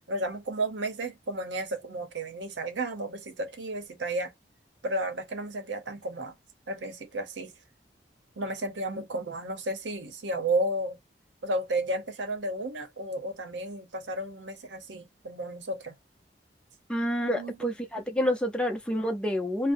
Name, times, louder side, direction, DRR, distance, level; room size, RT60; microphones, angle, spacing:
voice 1, 0.1-4.3 4.8-6.3 6.7-7.5 8.4-11.0 11.4-15.9 17.2-17.5, right 1 dB, 85° right, 0.7 m, -32 dB
voice 2, 16.9-19.7, equal, 5° left, 0.5 m, -28 dB
2.6 x 2.0 x 2.6 m
head